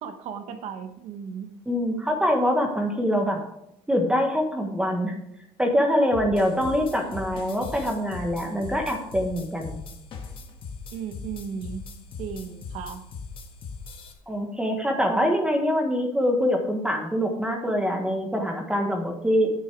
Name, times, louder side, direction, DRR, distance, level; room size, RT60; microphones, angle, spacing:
voice 1, 0.0-1.5 6.5-7.4 10.9-11.8 12.2-13.0, right 7 dB, 65° right, 8 dB, 1.4 m, -36 dB
voice 2, 1.7-3.4 3.9-5.1 5.6-9.8 14.3-19.5, equal, 5° right, 2 dB, 1.3 m, -24 dB
sound 1, 6.1-14.1, left 4 dB, 45° left, 1.6 m, -40 dB
10.0 x 9.3 x 4.7 m, 0.78 s
cardioid pair, 140°, 12 cm